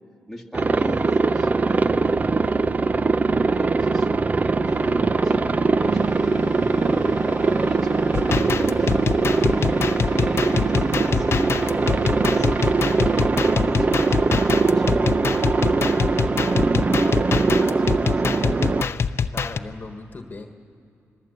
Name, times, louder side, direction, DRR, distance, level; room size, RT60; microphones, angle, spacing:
voice 1, 0.3-2.4 3.5-8.9 9.3-9.7 10.0-13.0 13.5-18.2, left 1 dB, ahead, 2 dB, 2.0 m, -38 dB
Aircraft, 0.5-18.8, right 3 dB, 30° right, 0.5 m, -21 dB
Keyboard (musical), 4.6-13.6, left 7 dB, 80° left, 0.7 m, -39 dB
sound 1, 8.1-19.6, left 6 dB, 50° left, 0.7 m, -25 dB
voice 2, 19.3-20.5, left 3 dB, 35° left, 5 dB, 1.4 m, -41 dB
26.5 x 21.0 x 8.1 m, 2.6 s
cardioid pair, 90°, 5 cm